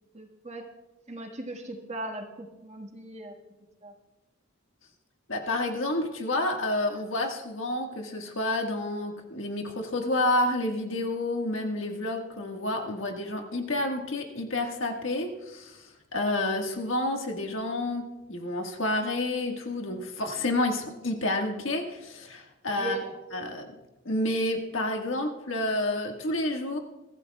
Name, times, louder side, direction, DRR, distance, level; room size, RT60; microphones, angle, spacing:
voice 1, 0.1-0.7 1.1-3.3 3.8-3.9 22.8-23.1, right 2 dB, 30° right, 2 dB, 1.6 m, -38 dB
voice 2, 5.3-23.0 23.3-23.7 24.0-26.8, left 1 dB, 65° left, 2 dB, 1.7 m, -29 dB
23.0 x 14.5 x 2.3 m, 1.0 s
head